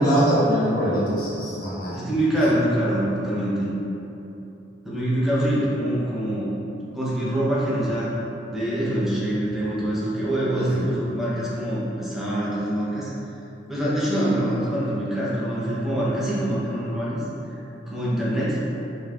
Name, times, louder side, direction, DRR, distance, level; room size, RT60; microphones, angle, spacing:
voice 1, 0.0-2.0 10.5-10.8, equal, 50° left, -10 dB, 1.2 m, -22 dB
voice 2, 1.9-3.7 4.8-6.5 6.9-8.1 8.5-13.1 13.7-17.2 17.9-18.6, right 1 dB, ahead, -9 dB, 0.9 m, -24 dB
5.3 x 3.2 x 2.5 m, 2.9 s
head